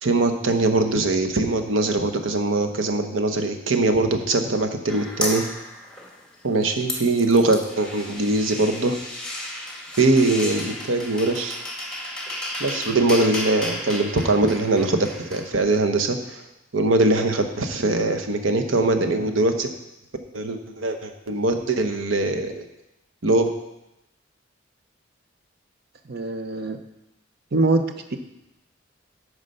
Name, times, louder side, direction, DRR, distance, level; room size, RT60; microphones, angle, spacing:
voice 1, 0.0-5.5 6.4-9.0 10.0-11.6 12.6-16.4 16.7-19.7 20.3-22.6 23.2-23.5, right 2 dB, 85° right, 6 dB, 1.0 m, -22 dB
sound 1, 4.9-6.4 6.6-15.4, left 1 dB, 5° left, 1.6 m, -33 dB
voice 2, 26.1-26.8 27.5-27.8 28.1-28.2, right 2 dB, 55° right, 7 dB, 0.8 m, -22 dB
9.6 x 4.9 x 6.5 m, 0.90 s
head